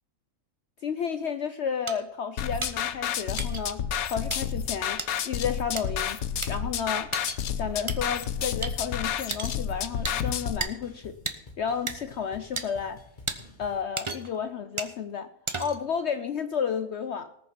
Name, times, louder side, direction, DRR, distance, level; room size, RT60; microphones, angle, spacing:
voice 1, 0.8-6.2 6.5-7.1 7.6-11.2 11.6-13.0 13.6-15.3 15.6-17.3, left 7 dB, 60° left, 10 dB, 0.9 m, -32 dB
sound 1, 1.9-2.0 2.6-2.7 3.4-3.6 4.3-4.4 5.0-5.1 5.8-5.9 6.4-6.5 7.1-7.4 7.9-8.0 8.6-8.7 9.3-9.6 10.0-10.2 10.6-10.7 11.3-11.4 11.9-12.0 12.6-12.7 13.3-13.4 14.0-14.4 14.8-14.9 15.5-15.9, right 3 dB, 25° right, 1.0 m, -33 dB
sound 2, 2.4-10.6, left 8 dB, 85° left, 1.3 m, -30 dB
sound 3, 7.0-7.1 7.4-7.7 8.0-13.8, left 2 dB, 35° left, 1.6 m, -50 dB
19.0 x 7.1 x 5.9 m, 0.82 s
omnidirectional pair, 1.5 m